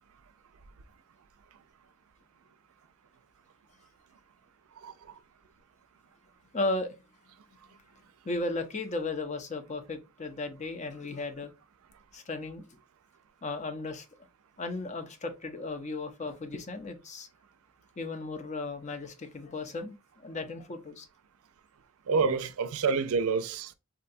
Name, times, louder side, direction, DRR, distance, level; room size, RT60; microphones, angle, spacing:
voice 1, 6.5-7.0 7.7-7.8 8.2-11.5 12.1-12.7 13.4-14.1 14.6-17.3 18.0-21.1, left 2 dB, 35° left, 0.5 m, -35 dB
voice 2, 22.1-23.7, right 5 dB, 80° right, 0.4 m, -27 dB
3.7 x 2.2 x 2.5 m
head